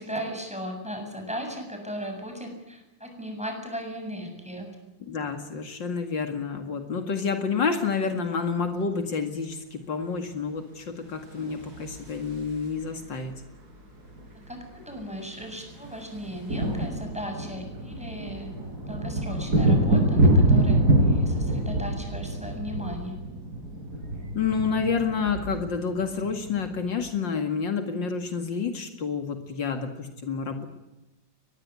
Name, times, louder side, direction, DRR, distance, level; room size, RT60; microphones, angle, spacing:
voice 1, 0.0-4.8 14.5-18.5 18.9-23.2, equal, 5° right, 3 dB, 7.5 m, -37 dB
voice 2, 5.0-13.3 24.3-30.7, left 5 dB, 75° left, 7 dB, 2.8 m, -29 dB
sound 1, 11.3-12.9 14.2-14.3 14.5-14.7 15.0-27.1, right 1 dB, 55° right, 5.6 m, -25 dB
23.0 x 21.0 x 9.7 m, 0.97 s
omnidirectional pair, 2.0 m